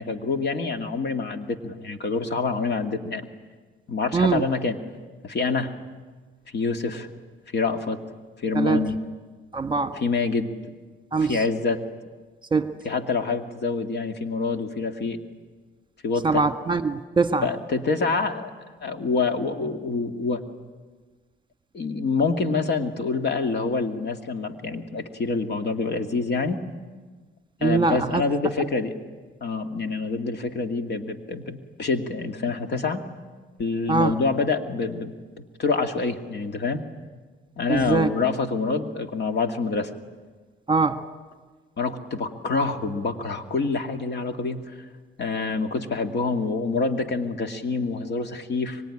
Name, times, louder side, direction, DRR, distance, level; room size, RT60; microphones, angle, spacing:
voice 1, 0.0-3.3 3.9-4.8 5.2-5.7 6.5-7.1 7.5-8.0 8.4-9.0 9.9-10.5 11.2-11.8 12.8-15.2 16.0-16.4 17.4-18.5 18.8-20.4 21.7-26.7 27.6-28.9 29.4-33.0 33.6-36.8 37.6-39.9 41.8-44.9 45.2-48.8, left 4 dB, 60° left, 6 dB, 2.3 m, -26 dB
voice 2, 4.1-4.4 8.5-8.9 9.5-10.0 11.1-11.4 12.5-12.8 16.2-17.5 27.6-28.2 33.9-34.1 37.7-38.1 40.7-41.0, right 4 dB, 25° right, 9 dB, 1.4 m, -22 dB
24.0 x 24.0 x 10.0 m, 1.4 s
cardioid pair, 90°, 20 cm